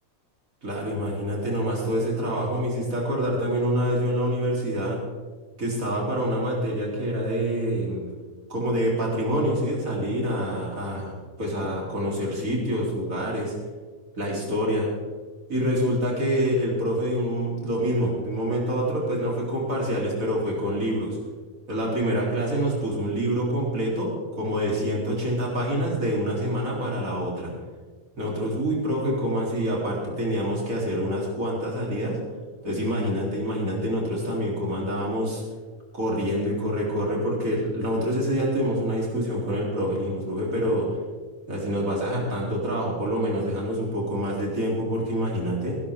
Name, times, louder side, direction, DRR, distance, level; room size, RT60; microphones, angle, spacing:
voice 1, 0.6-5.0 5.6-8.0 8.5-13.5 14.2-14.9 15.5-21.2 21.7-24.1 24.4-27.5 28.2-32.2 32.6-35.4 35.9-40.9 41.5-45.8, equal, 80° right, -3 dB, 4.2 m, -26 dB
19.0 x 12.0 x 3.7 m, 1.4 s
omnidirectional pair, 1.4 m